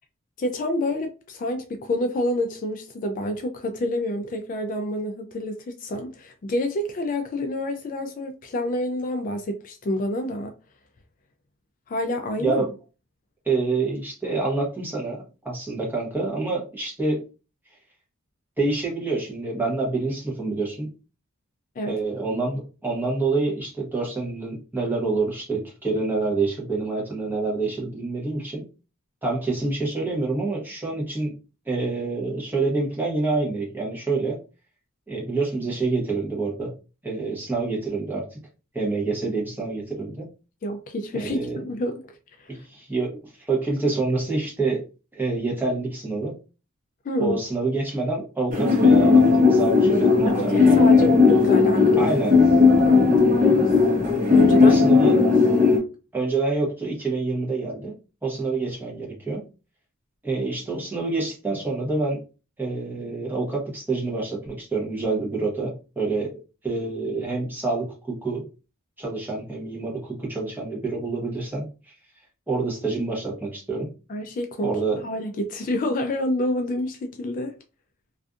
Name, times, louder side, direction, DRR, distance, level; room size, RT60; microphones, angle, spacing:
voice 1, 0.4-10.5 11.9-12.6 21.8-22.0 40.6-42.5 47.0-47.4 50.3-52.2 52.9-53.4 54.3-54.8 55.1-55.7 74.1-77.5, left 1 dB, 40° left, 0.3 m, -28 dB
voice 2, 13.4-17.2 18.6-20.9 21.8-28.7 29.2-31.4 31.7-34.4 35.1-36.7 37.0-38.3 38.7-40.3 41.1-41.6 42.5-44.8 45.1-46.3 47.2-51.1 52.0-52.4 54.6-55.2 56.1-58.0 58.2-59.4 60.2-62.2 62.6-66.4 66.6-68.5 69.0-71.7 72.5-73.9 74.6-75.0, right 3 dB, 10° right, 0.8 m, -27 dB
sound 1, 48.5-55.8, left 4 dB, 35° right, 0.9 m, -16 dB
2.5 x 2.4 x 2.4 m
head